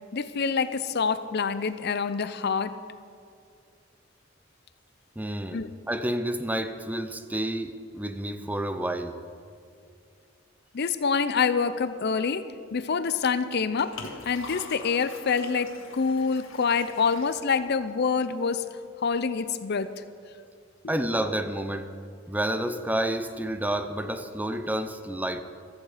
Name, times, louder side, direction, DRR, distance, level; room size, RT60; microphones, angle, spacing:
voice 1, 0.1-2.8 5.5-5.7 10.7-12.4 12.7-18.7 19.0-19.9, left 5 dB, 55° left, 13 dB, 0.6 m, -26 dB
voice 2, 5.2-9.2 20.9-21.9 22.3-25.4, right 1 dB, 10° right, 9 dB, 0.6 m, -30 dB
Liquid, 13.4-18.4, left 3 dB, 75° left, 1.6 m, -45 dB
15.5 x 14.0 x 5.0 m, 2.3 s
head